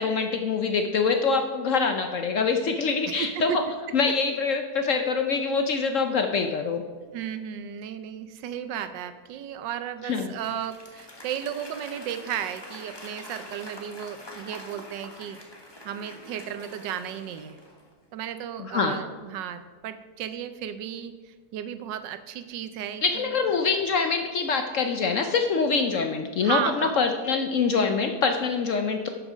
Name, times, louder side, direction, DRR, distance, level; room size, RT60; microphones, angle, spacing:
voice 1, 0.0-3.6 3.9-6.8 10.1-10.3 18.6-19.0 23.0-29.1, left 5 dB, 65° left, 5 dB, 0.8 m, -25 dB
voice 2, 3.0-3.6 7.1-15.4 15.8-17.6 18.1-23.4 26.4-27.0, right 9 dB, 85° right, 11 dB, 1.3 m, -34 dB
Applause / Crowd, 10.1-17.9, left 1 dB, 15° left, 1.1 m, -45 dB
11.5 x 6.3 x 5.0 m, 1.5 s
omnidirectional pair, 1.9 m